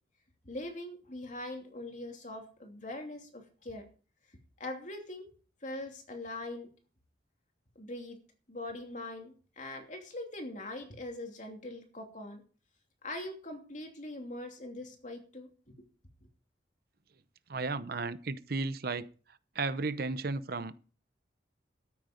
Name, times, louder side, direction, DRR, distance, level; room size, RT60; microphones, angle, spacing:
voice 1, 0.4-3.8 4.6-5.3 5.6-6.7 7.7-8.2 8.5-12.4 13.0-15.7, left 1 dB, 45° left, 2.8 m, -42 dB
voice 2, 17.5-19.1 19.5-20.8, right 3 dB, 60° right, 0.8 m, -34 dB
13.0 x 9.2 x 5.2 m
head